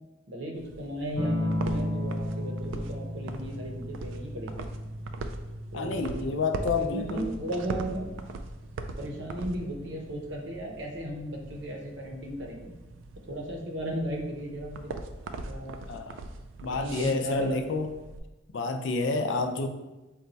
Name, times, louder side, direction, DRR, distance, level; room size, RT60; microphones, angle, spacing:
voice 1, 0.3-4.6 5.7-6.3 6.8-8.1 9.0-12.7 13.3-14.9 15.5-15.8 16.7-17.7, equal, 65° right, 0 dB, 0.7 m, -35 dB
sound 1, 0.5-18.2, right 3 dB, 80° right, 0.3 m, -41 dB
sound 2, 1.2-10.2 11.7-12.2, left 1 dB, 10° right, 0.5 m, -36 dB
voice 2, 5.7-7.3 15.9-16.2 16.6-17.9 18.5-19.7, left 3 dB, 70° left, 6 dB, 0.4 m, -29 dB
4.1 x 2.3 x 3.9 m, 1.1 s
head